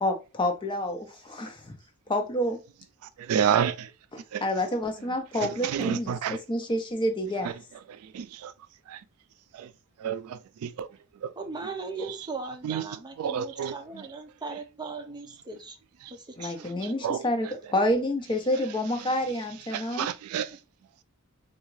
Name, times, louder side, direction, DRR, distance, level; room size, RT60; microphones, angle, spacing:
voice 1, 0.0-1.7 2.1-2.6 4.1-7.5 16.4-20.1, left 1 dB, 20° left, 0.6 m, -28 dB
voice 2, 3.3-3.9 4.3-4.4 5.7-6.4 8.1-8.5 10.0-10.2 10.6-10.9 12.6-12.8 13.2-13.7 17.0-17.2 19.7-20.5, right 8 dB, 75° right, 0.3 m, -28 dB
voice 3, 11.4-15.8 16.1-16.9, right 3 dB, 20° right, 0.5 m, -38 dB
3.5 x 2.3 x 3.1 m
head